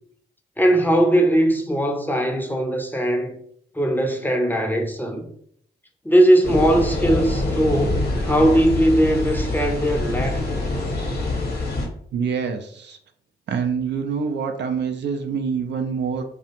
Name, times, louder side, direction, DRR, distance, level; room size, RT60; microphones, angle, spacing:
voice 1, 0.6-3.4 3.7-5.3 6.0-10.5, right 1 dB, 10° left, 0.6 m, -19 dB
sound 1, 6.4-11.9, left 2 dB, 55° left, 0.9 m, -25 dB
voice 2, 12.1-13.0 13.5-16.2, right 6 dB, 60° right, 0.4 m, -26 dB
2.4 x 2.1 x 2.8 m
supercardioid pair, 40°, 20 cm